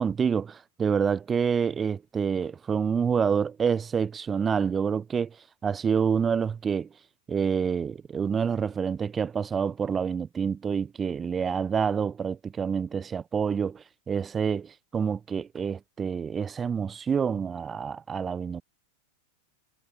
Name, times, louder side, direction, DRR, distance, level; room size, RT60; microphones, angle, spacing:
voice 1, 0.0-5.4 5.6-6.9 7.3-18.6, right 6 dB, 20° right, 7.0 m, -27 dB
figure-of-eight pair, 90°, 0 cm